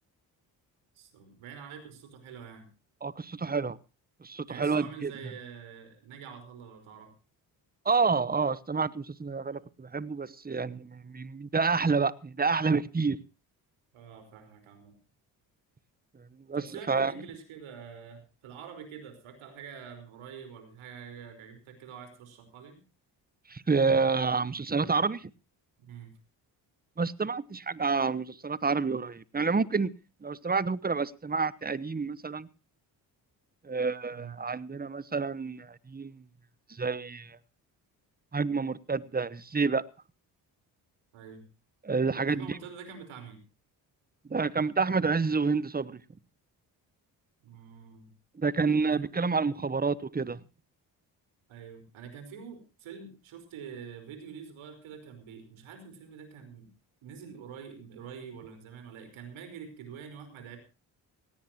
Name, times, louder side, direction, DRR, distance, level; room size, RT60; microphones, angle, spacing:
voice 1, 0.9-2.7 4.5-7.1 13.9-15.0 16.5-22.8 25.8-26.2 34.1-34.4 41.1-41.4 42.3-43.4 47.4-48.1 51.5-56.7 57.0-60.6, right 7 dB, 75° right, 5.1 m, -46 dB
voice 2, 3.0-3.8 4.2-5.1 7.8-13.2 16.5-17.1 23.5-25.3 27.0-29.9 30.2-32.5 33.6-36.2 36.7-37.4 38.3-39.8 41.8-42.6 44.3-46.0 48.4-50.4, right 4 dB, 20° right, 1.1 m, -28 dB
18.5 x 17.5 x 3.0 m
supercardioid pair, 55°, 48 cm